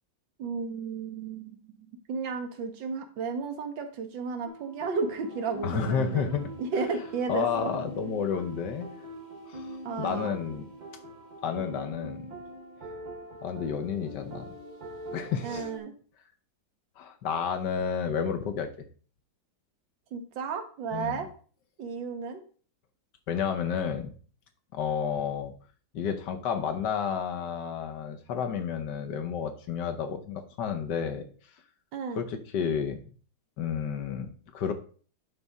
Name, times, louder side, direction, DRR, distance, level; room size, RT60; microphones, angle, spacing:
voice 1, 0.4-6.3 6.6-7.7 9.8-10.3 15.4-15.9 20.1-21.3 21.8-22.4 31.9-32.2, right 5 dB, 80° right, 6 dB, 1.8 m, -33 dB
sound 1, 4.5-15.8, right 1 dB, 45° right, 0.6 m, -43 dB
voice 2, 5.6-6.5 7.3-8.9 9.5-10.7 11.4-12.3 13.4-14.5 15.1-15.7 17.0-18.7 20.9-21.2 23.3-24.1 24.7-25.5 25.9-31.3 32.1-33.0 33.6-34.7, left 7 dB, 70° left, 7 dB, 1.4 m, -31 dB
11.0 x 4.1 x 3.6 m, 0.42 s
omnidirectional pair, 2.0 m